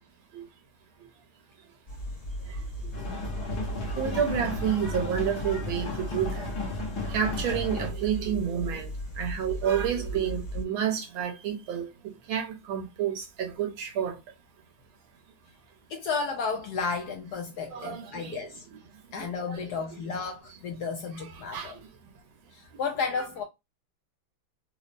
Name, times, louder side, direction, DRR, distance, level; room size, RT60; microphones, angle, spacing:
sound 1, 1.9-10.6, right 1 dB, 25° left, 0.9 m, -36 dB
sound 2, 2.9-7.9, left 3 dB, 55° left, 1.5 m, -35 dB
voice 1, 3.9-6.5 7.1-8.9 9.2-11.9 12.3-14.1 17.7-18.5 19.5-19.6 21.2-21.7 23.2-23.3, right 8 dB, 90° right, 1.7 m, -29 dB
voice 2, 15.9-18.6 19.1-21.8 22.5-23.4, left 5 dB, 75° left, 0.9 m, -33 dB
4.0 x 2.0 x 2.5 m
omnidirectional pair, 2.2 m